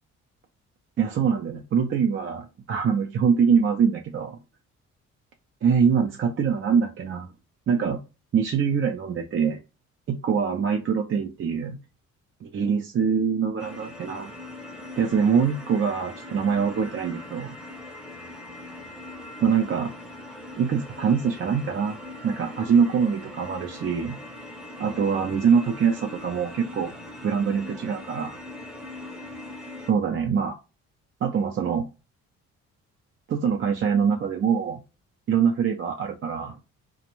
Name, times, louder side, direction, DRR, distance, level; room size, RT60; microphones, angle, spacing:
voice 1, 1.0-4.4 5.6-7.3 7.7-8.0 8.3-9.6 10.1-11.8 12.4-14.3 15.0-17.6 19.4-19.9 20.6-22.0 22.2-24.2 24.8-26.9 27.2-28.4 29.9-30.5 31.2-31.9 33.3-34.8 35.3-36.6, right 6 dB, 40° right, 3 dB, 0.5 m, -24 dB
sound 1, 13.6-29.9, left 1 dB, ahead, 0.7 m, -41 dB
2.5 x 2.2 x 3.0 m, 0.28 s
cardioid pair, 90°, 30 cm